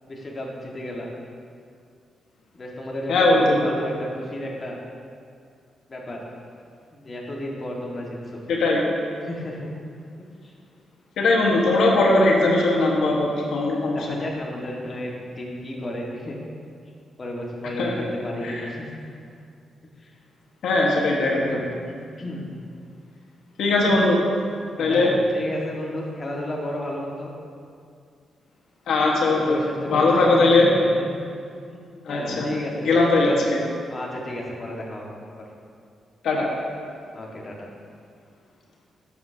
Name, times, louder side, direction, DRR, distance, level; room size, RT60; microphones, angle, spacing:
voice 1, 0.1-1.1 2.5-4.8 5.9-6.2 6.9-8.4 9.2-9.7 10.4-10.5 13.8-16.4 17.2-18.9 20.0-20.1 21.3-22.5 24.8-27.3 29.2-31.0 31.7-31.8 32.1-32.9 33.2-33.5 33.9-35.2 37.1-37.7, left 1 dB, 35° left, -2 dB, 1.6 m, -33 dB
voice 2, 3.1-3.6 8.5-8.9 11.2-14.2 17.8-17.9 18.4-18.5 20.6-21.6 23.6-24.2 24.8-25.1 28.9-29.6 29.9-30.7 32.0-32.5 32.8-33.4 36.2-36.5, left 2 dB, 85° left, -3 dB, 1.3 m, -19 dB
11.0 x 8.0 x 2.8 m, 2.3 s
cardioid pair, 110°, 0 cm